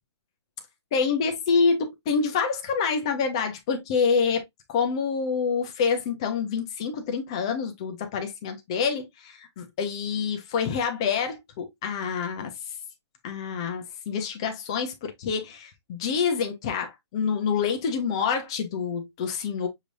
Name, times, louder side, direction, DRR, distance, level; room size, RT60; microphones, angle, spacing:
voice 1, 0.9-4.4 4.7-12.7 13.2-19.7, left 5 dB, 10° left, 0.4 m, -27 dB
6.4 x 3.2 x 2.5 m
hypercardioid pair, 175°, 15 cm